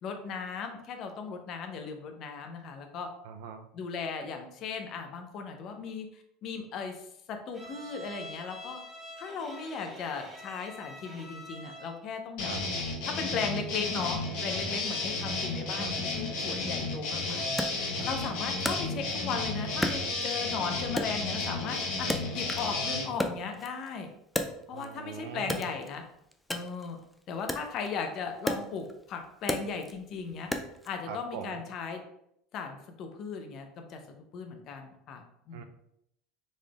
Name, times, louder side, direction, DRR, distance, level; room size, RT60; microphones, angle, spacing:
voice 1, 0.0-3.1 3.7-7.0 7.3-8.8 9.2-12.5 13.1-17.7 18.0-24.1 24.7-26.0 26.5-27.0 27.3-30.5 30.8-32.0 32.5-34.0 34.3-35.6, left 5 dB, 55° left, 5 dB, 0.6 m, -37 dB
voice 2, 3.2-3.7 12.5-12.6 15.8-16.0 18.0-18.1 24.7-25.7 31.1-31.6 35.5-35.6, right 7 dB, 80° right, 7 dB, 0.4 m, -42 dB
Bowed string instrument, 7.5-12.1, equal, 15° right, 1.0 m, -46 dB
sound 1, 12.4-23.1, left 3 dB, 70° left, 0.9 m, -33 dB
Wood, 17.6-19.4 19.8-20.6 21.0-22.8 23.1-25.0 25.4-31.0, left 1 dB, 5° left, 0.4 m, -35 dB
3.9 x 3.3 x 2.4 m, 0.77 s
supercardioid pair, 100°, 0 cm